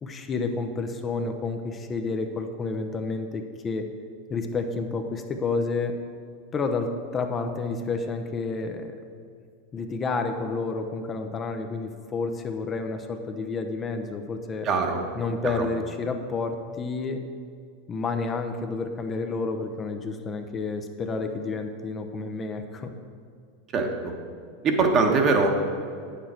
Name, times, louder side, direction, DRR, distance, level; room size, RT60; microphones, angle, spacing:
voice 1, 0.0-3.9 4.3-5.9 6.5-8.9 9.7-14.7 15.1-17.2 17.9-22.9, left 4 dB, 30° left, 5 dB, 0.7 m, -30 dB
voice 2, 14.6-15.0 15.4-15.6 23.7-24.1 24.6-25.6, right 4 dB, 40° right, 3 dB, 1.3 m, -22 dB
8.8 x 6.9 x 4.4 m, 2.2 s
hypercardioid pair, 95°, 0 cm